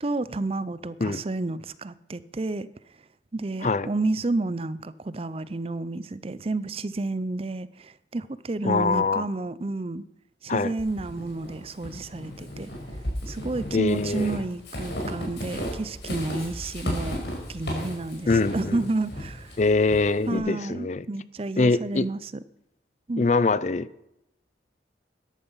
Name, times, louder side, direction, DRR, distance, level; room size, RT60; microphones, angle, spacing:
voice 1, 0.0-2.7 3.3-10.0 10.4-12.7 13.3-17.2 17.5-19.5 20.3-22.3 23.1-23.3, right 2 dB, 30° right, 0.5 m, -30 dB
voice 2, 8.6-9.2 10.5-10.7 13.7-14.4 18.3-18.8 19.6-21.1 21.6-22.1 23.2-24.1, left 3 dB, 40° left, 0.4 m, -23 dB
Walk footsteps / Squeak, 10.8-20.4, equal, 70° left, 4.8 m, -35 dB
13.5 x 10.5 x 5.6 m
head